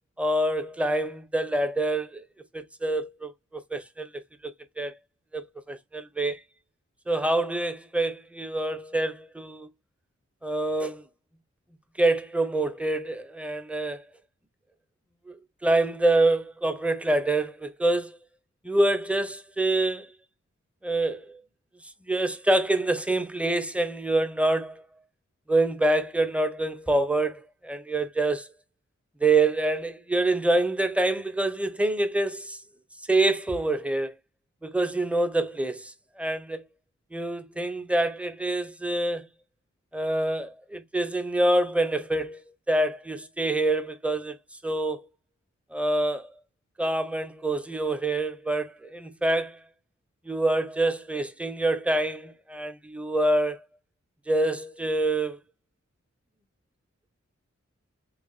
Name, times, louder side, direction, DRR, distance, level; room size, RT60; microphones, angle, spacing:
voice 1, 0.2-2.3 2.5-4.9 5.3-6.4 7.1-9.7 10.4-11.1 12.0-14.0 15.3-18.2 18.6-20.1 20.8-21.4 22.0-24.8 25.5-28.5 29.2-32.6 33.1-34.1 34.6-36.6 37.1-39.3 39.9-42.4 42.7-44.4 44.6-45.1 45.7-46.3 46.8-49.6 50.2-53.6 54.3-55.4, right 2 dB, 5° right, 0.7 m, -26 dB
4.0 x 3.4 x 2.3 m
cardioid pair, 40°, 29 cm